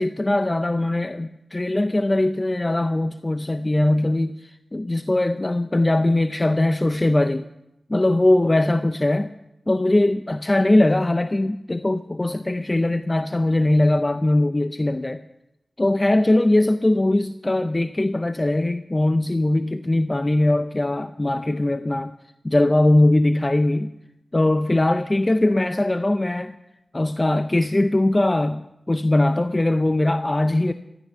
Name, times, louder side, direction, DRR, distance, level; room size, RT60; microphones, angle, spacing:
voice 1, 0.0-7.5 7.9-9.3 9.7-15.2 15.8-22.1 22.4-23.9 24.3-26.6 26.9-30.7, left 1 dB, 30° left, 10 dB, 0.6 m, -20 dB
15.0 x 13.0 x 5.7 m, 0.89 s
cardioid pair, 45°, 0 cm